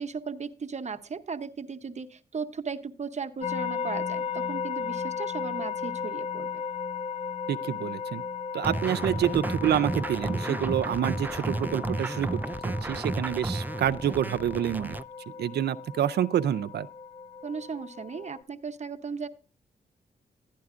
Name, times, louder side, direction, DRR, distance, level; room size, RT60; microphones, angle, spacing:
voice 1, 0.0-6.6 17.4-19.3, right 5 dB, 45° right, 0.8 m, -36 dB
sound 1, 3.4-18.4, left 6 dB, 40° left, 0.5 m, -36 dB
voice 2, 7.5-8.2 8.5-15.0 15.4-16.9, right 10 dB, 80° right, 0.4 m, -28 dB
sound 2, 8.6-15.0, right 2 dB, 10° right, 0.3 m, -32 dB
12.0 x 9.3 x 2.5 m
cardioid pair, 55°, 17 cm